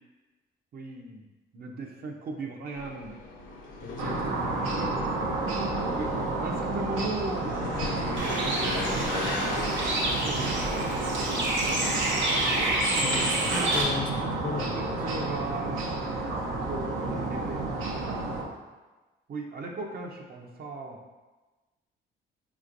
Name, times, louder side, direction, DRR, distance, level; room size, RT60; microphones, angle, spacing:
voice 1, 0.7-1.3 1.5-3.2 4.6-5.6 6.0-6.1 6.4-10.5 11.0-11.9 14.8-17.6 17.9-18.4 19.3-21.0, right 2 dB, 50° right, 1 dB, 0.6 m, -38 dB
sound 1, 2.7-13.3, left 3 dB, 80° left, 0.7 m, -39 dB
voice 2, 3.8-4.9 5.2-5.3 12.9-15.0, left 4 dB, 45° left, 3 dB, 0.5 m, -36 dB
sound 2, 4.0-18.4, right 2 dB, 90° right, 0.7 m, -31 dB
Bird, 8.2-13.8, right 1 dB, 70° right, 1.0 m, -29 dB
4.3 x 3.1 x 2.5 m, 1.2 s
cardioid pair, 90°, 20 cm